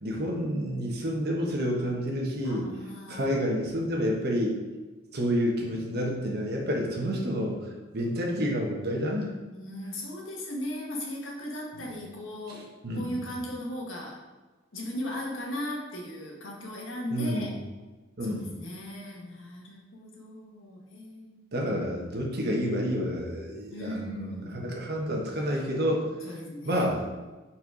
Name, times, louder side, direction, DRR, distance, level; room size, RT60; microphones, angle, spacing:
voice 1, 0.0-2.7 3.1-4.6 5.1-7.6 7.9-9.3 12.5-13.1 17.1-17.5 18.2-18.5 21.5-26.0 26.6-27.1, equal, 55° right, -1 dB, 1.2 m, -29 dB
voice 2, 2.4-3.7 9.5-12.6 12.9-14.2 14.7-17.5 18.2-21.5 23.7-24.8 26.2-27.0, left 1 dB, 80° left, -2 dB, 1.4 m, -38 dB
4.4 x 4.3 x 4.9 m, 1.2 s
head